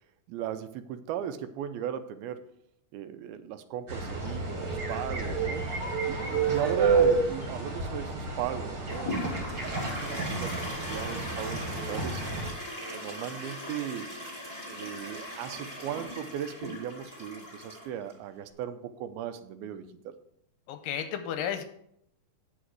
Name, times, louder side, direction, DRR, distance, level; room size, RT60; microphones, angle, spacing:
voice 1, 0.3-2.5 2.9-5.7 6.1-9.6 10.0-12.2 12.8-14.1 14.6-20.2, right 9 dB, 85° right, 11 dB, 2.5 m, -37 dB
sound 1, 3.9-12.5, right 4 dB, 35° right, 2.0 m, -30 dB
Toilet flush, 8.9-18.1, left 1 dB, 10° left, 2.3 m, -39 dB
voice 2, 20.7-21.6, left 9 dB, 80° left, 8 dB, 2.2 m, -33 dB
9.3 x 6.3 x 4.7 m, 0.72 s
omnidirectional pair, 4.3 m